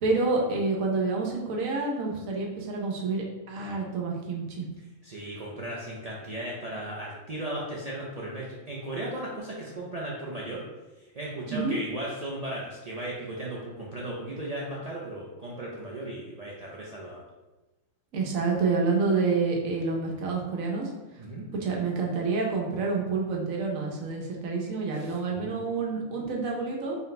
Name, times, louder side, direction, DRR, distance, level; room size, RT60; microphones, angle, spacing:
voice 1, 0.0-4.7 11.5-11.8 18.1-20.9 21.6-27.0, right 4 dB, 80° right, -1 dB, 1.2 m, -28 dB
voice 2, 5.0-10.6 11.0-17.2 21.2-21.5 24.9-25.7, right 1 dB, 65° right, -5 dB, 0.3 m, -36 dB
4.1 x 2.1 x 3.9 m, 1.1 s
omnidirectional pair, 1.4 m